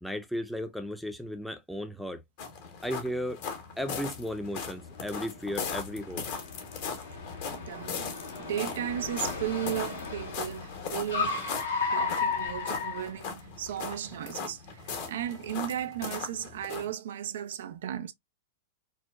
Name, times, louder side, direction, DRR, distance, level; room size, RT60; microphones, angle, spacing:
voice 1, 0.0-2.2 2.8-3.4 3.8-6.2, equal, ahead, 0.6 m, -35 dB
sound 1, 2.4-16.9, left 6 dB, 55° left, 1.0 m, -39 dB
Car, 3.9-13.7, left 5 dB, 75° left, 1.1 m, -35 dB
voice 2, 7.5-11.4 11.9-18.1, right 11 dB, 70° right, 0.3 m, -35 dB
4.5 x 2.1 x 2.2 m
hypercardioid pair, 100°, 0 cm